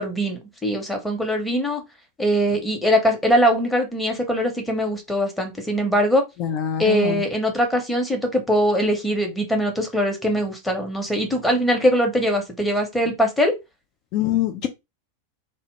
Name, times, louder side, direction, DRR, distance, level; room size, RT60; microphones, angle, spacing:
voice 1, 0.0-1.8 2.2-6.2 6.8-13.5, equal, 5° left, 0.8 m, -22 dB
voice 2, 6.4-7.2 14.1-14.7, left 11 dB, 40° left, 0.3 m, -24 dB
2.0 x 2.0 x 3.0 m
figure-of-eight pair, 90°, 0 cm